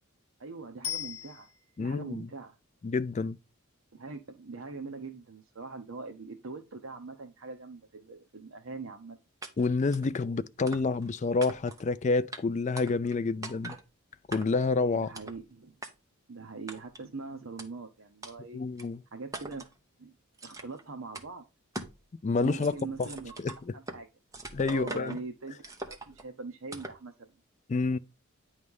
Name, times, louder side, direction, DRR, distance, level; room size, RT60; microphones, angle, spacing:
voice 1, 0.4-1.5 1.8-2.6 3.9-9.2 14.9-15.8 16.3-18.6 19.1-19.6 20.0-20.1 20.4-21.4 22.3-23.3 23.7-24.1 24.6-25.6 25.9-27.3, right 3 dB, 65° right, 0.7 m, -42 dB
Bicycle bell, 0.8-2.0 11.0-11.1, left 9 dB, 75° left, 1.0 m, -38 dB
voice 2, 1.8-2.3 2.8-3.4 9.6-13.8 14.3-15.1 18.5-19.0 22.2-22.7 23.0-23.1 23.4-23.7 24.5-25.2 27.7-28.0, left 3 dB, 30° left, 0.3 m, -28 dB
sound 1, 9.4-9.5 9.9-10.1 10.7-11.1 11.4-11.9 12.3-12.4 12.8-13.2 13.4-13.8 14.3-14.7 15.1-15.4 15.8-15.9 16.7-17.0 17.6-17.7 18.2-18.3 18.8-18.9 19.3-19.7 20.4-20.8 21.1-21.3 21.7-22.0 22.3-24.0 24.3-25.2 25.6-26.2 26.7-27.0, right 2 dB, 15° right, 0.8 m, -42 dB
9.6 x 3.2 x 5.3 m
head